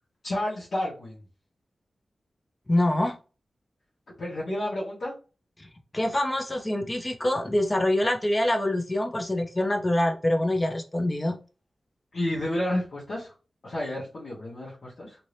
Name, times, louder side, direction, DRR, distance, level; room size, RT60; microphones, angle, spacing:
voice 1, 0.2-1.2 4.2-5.1 12.1-13.3 13.6-15.2, left 1 dB, 65° left, 1.0 m, -30 dB
voice 2, 2.7-3.1 5.6-5.7 5.9-11.4, left 1 dB, 20° left, 0.4 m, -25 dB
2.7 x 2.6 x 3.1 m
wide cardioid pair, 135°, 0 cm